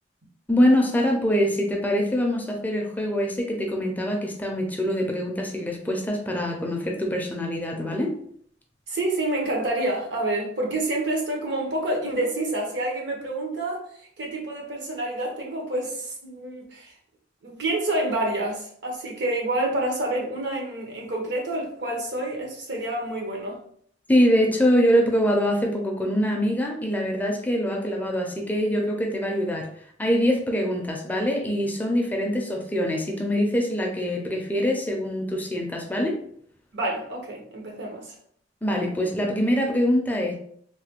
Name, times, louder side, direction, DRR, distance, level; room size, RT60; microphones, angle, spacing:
voice 1, 0.5-8.1 24.1-29.7 30.0-36.2 38.6-40.3, equal, 10° left, 1 dB, 0.4 m, -24 dB
voice 2, 8.9-16.9 17.4-23.6 36.7-38.2, right 1 dB, 70° right, 0 dB, 0.8 m, -28 dB
3.2 x 2.2 x 2.9 m, 0.63 s
head